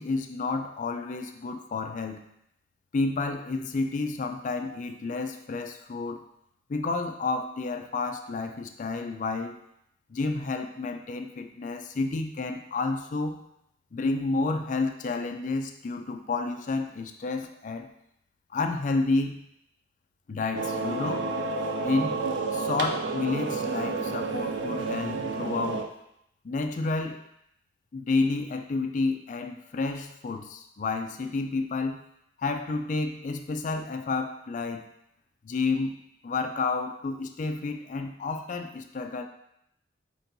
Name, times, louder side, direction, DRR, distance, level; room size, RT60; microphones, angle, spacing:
voice 1, 0.0-2.2 2.9-6.2 6.7-9.6 10.1-13.4 13.9-17.9 18.5-19.5 20.3-21.3 21.8-22.2 22.5-25.9 26.4-27.2 27.9-32.0 32.4-34.9 35.4-36.0 36.2-39.2, left 3 dB, 45° left, 6 dB, 0.4 m, -30 dB
sound 1, 20.5-25.8, right 3 dB, 85° right, 0.5 m, -30 dB
4.4 x 4.3 x 2.6 m, 0.77 s
head